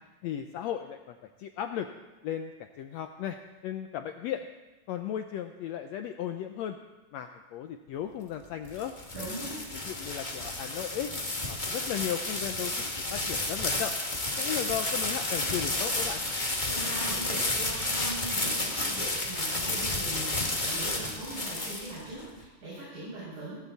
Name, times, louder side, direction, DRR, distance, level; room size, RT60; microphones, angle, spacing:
voice 1, 0.2-1.9 2.2-2.5 2.8-3.4 3.6-4.5 4.9-6.8 7.1-8.9 9.7-11.1 11.5-14.0 14.4-16.2, left 10 dB, 75° left, 6 dB, 1.6 m, -35 dB
sound 1, 8.4-22.3, left 2 dB, 20° left, 1.5 m, -31 dB
voice 2, 9.1-9.6 16.6-23.6, right 1 dB, 85° right, -10 dB, 8.3 m, -40 dB
20.0 x 16.5 x 4.1 m, 1.1 s
omnidirectional pair, 3.6 m